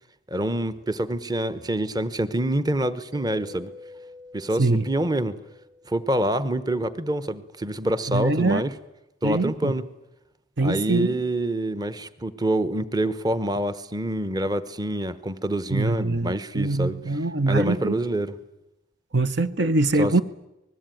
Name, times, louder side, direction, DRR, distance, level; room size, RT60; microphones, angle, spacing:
voice 1, 0.3-3.7 4.3-5.4 5.9-8.7 9.2-9.9 10.6-18.4 20.0-20.1, right 1 dB, 20° right, 1.0 m, -26 dB
Mallet percussion, 3.1-6.6, left 2 dB, 80° right, 4.5 m, -47 dB
voice 2, 8.1-8.6 9.2-9.7 10.6-11.1 15.7-18.0 19.1-20.2, right 2 dB, 60° right, 0.9 m, -23 dB
25.5 x 20.5 x 9.2 m
head